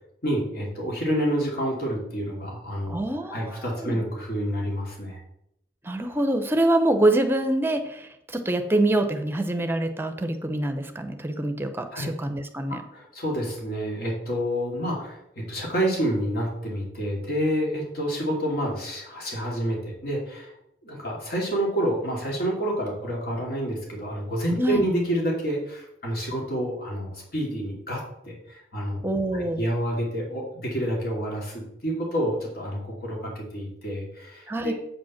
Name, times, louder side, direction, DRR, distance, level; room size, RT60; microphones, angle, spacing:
voice 1, 0.2-3.0 3.3-5.2 11.9-12.1 12.7-20.5 20.8-29.0 29.3-34.7, equal, 55° left, -2 dB, 2.6 m, -28 dB
voice 2, 2.9-4.0 5.8-12.8 24.6-24.9 29.0-29.6 34.5-34.7, right 1 dB, 15° right, 7 dB, 0.8 m, -25 dB
8.2 x 5.2 x 5.9 m, 0.77 s
head